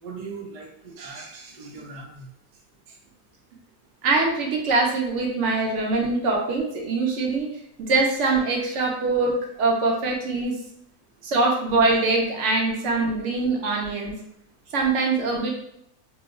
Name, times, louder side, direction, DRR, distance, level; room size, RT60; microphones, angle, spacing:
voice 1, 0.0-2.3, right 4 dB, 75° right, -1 dB, 0.3 m, -39 dB
voice 2, 4.0-7.5 7.8-10.5 11.2-14.1 14.7-15.5, right 3 dB, 60° right, 0 dB, 0.9 m, -23 dB
3.0 x 2.1 x 3.6 m, 0.74 s
omnidirectional pair, 1.6 m